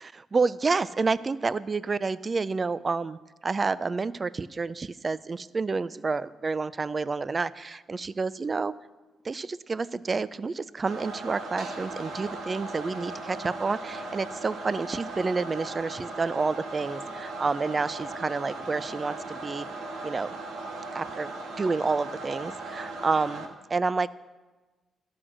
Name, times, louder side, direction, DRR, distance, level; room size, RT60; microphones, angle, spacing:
voice 1, 0.0-8.7 9.2-19.7 20.0-20.3 20.9-21.3 21.6-24.1, right 4 dB, 35° right, 18 dB, 0.4 m, -29 dB
sound 1, 10.9-23.5, right 2 dB, 80° right, 1.5 m, -38 dB
12.5 x 6.2 x 6.2 m, 1.2 s
cardioid pair, 90°, 0 cm